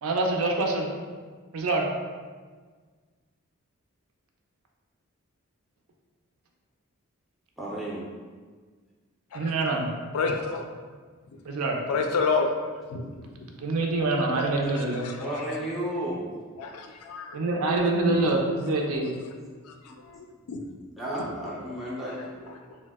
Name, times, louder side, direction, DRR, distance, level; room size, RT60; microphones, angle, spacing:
voice 1, 0.0-0.9 1.5-1.9 9.3-9.9 11.4-11.8 13.6-15.1 17.3-19.1, right 2 dB, 75° right, 1 dB, 0.4 m, -25 dB
voice 2, 7.6-8.0 15.2-16.2 21.0-22.3, right 1 dB, ahead, -6 dB, 0.4 m, -32 dB
voice 3, 10.1-10.8 11.3-11.4 11.9-13.5 16.6-17.4 18.1-18.3 19.6-20.6 22.0-22.1 22.5-22.8, left 4 dB, 80° left, 4 dB, 0.3 m, -30 dB
2.8 x 2.0 x 3.3 m, 1.5 s
head